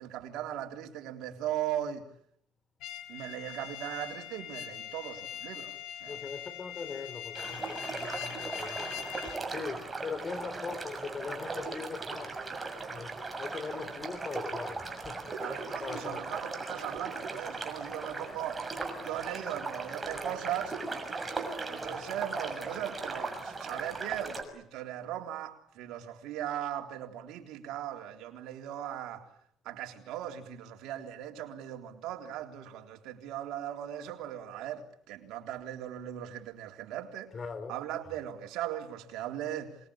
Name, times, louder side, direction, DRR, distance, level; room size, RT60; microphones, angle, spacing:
voice 1, 0.0-2.1 3.1-6.2 15.4-18.7 19.0-20.7 21.7-29.3 29.7-37.3 37.7-39.8, right 11 dB, 75° right, 3.7 m, -38 dB
sound 1, 2.8-9.4, left 11 dB, 80° left, 2.7 m, -42 dB
voice 2, 6.1-8.9 9.5-12.3 12.9-15.2 15.8-16.2 37.3-37.8, left 5 dB, 35° left, 3.9 m, -40 dB
sound 2, 7.3-24.4, right 3 dB, 20° right, 6.4 m, -38 dB
26.0 x 21.5 x 8.8 m
cardioid pair, 110°, 0 cm